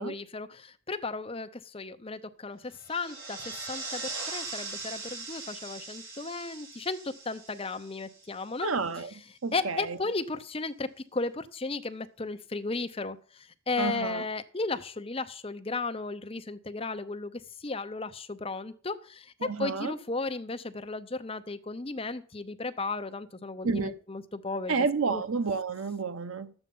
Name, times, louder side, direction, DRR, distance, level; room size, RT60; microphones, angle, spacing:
voice 1, 0.0-8.7 9.5-25.2, left 3 dB, 25° left, 0.7 m, -35 dB
sound 1, 2.8-8.6, right 3 dB, 60° right, 4.7 m, -40 dB
voice 2, 8.6-9.1 9.4-10.0 13.8-14.2 19.4-20.0 23.6-23.9 24.7-26.5, right 4 dB, 85° right, 0.8 m, -30 dB
12.0 x 8.1 x 5.4 m
head